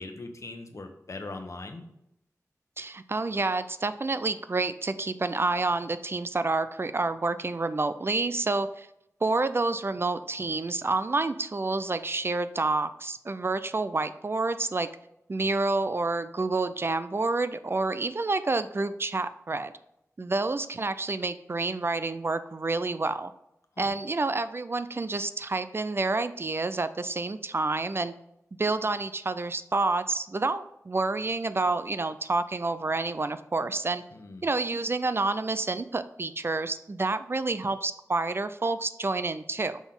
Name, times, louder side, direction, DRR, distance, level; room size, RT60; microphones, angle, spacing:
voice 1, 0.0-1.9 23.8-24.0 34.1-34.5, left 2 dB, 60° left, 6 dB, 1.0 m, -40 dB
voice 2, 2.8-8.9 9.2-14.9 15.3-19.7 20.2-23.3 23.8-28.1 28.6-34.0 34.4-39.8, right 3 dB, 40° right, 12 dB, 0.4 m, -28 dB
6.0 x 6.0 x 3.7 m, 0.81 s
wide cardioid pair, 80°, 6 cm